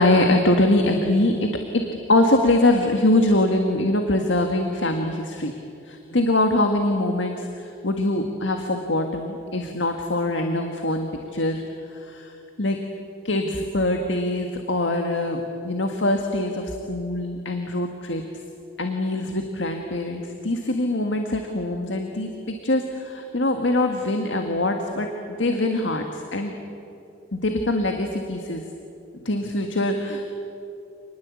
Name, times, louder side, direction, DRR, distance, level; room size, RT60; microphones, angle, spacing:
voice 1, 0.0-5.5 5.9-11.6 11.9-12.3 12.6-12.8 13.2-18.2 18.8-26.6 27.3-28.6 29.2-30.3, left 1 dB, 80° left, 4 dB, 1.7 m, -23 dB
27.5 x 20.5 x 8.4 m, 2.7 s
head